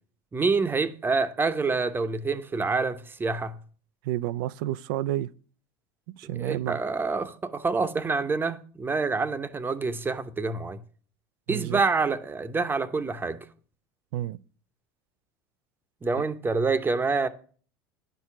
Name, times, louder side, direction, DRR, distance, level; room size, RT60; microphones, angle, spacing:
voice 1, 0.3-3.6 6.4-10.8 11.5-13.4 16.0-17.3, right 4 dB, 20° right, 0.8 m, -27 dB
voice 2, 4.0-5.3 6.2-6.8 11.5-11.8 14.1-14.4, right 14 dB, 75° right, 0.4 m, -30 dB
9.8 x 4.6 x 5.9 m
hypercardioid pair, 90°, 11 cm